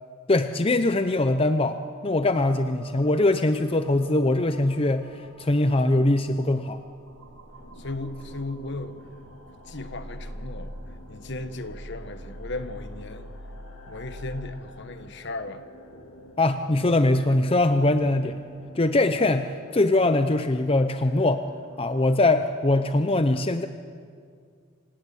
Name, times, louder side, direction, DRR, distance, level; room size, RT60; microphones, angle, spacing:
voice 1, 0.3-6.8 16.4-18.4 18.7-21.4 21.8-23.7, left 2 dB, 25° left, 9 dB, 0.7 m, -22 dB
sound 1, 2.4-14.6, equal, 85° right, 3.1 m, -44 dB
sound 2, 7.6-23.0, left 1 dB, 85° left, 2.5 m, -49 dB
voice 2, 7.7-9.0 9.6-10.7 11.1-13.3 13.9-15.6, left 2 dB, 55° left, 10 dB, 1.4 m, -36 dB
27.0 x 17.0 x 9.4 m, 2.2 s
head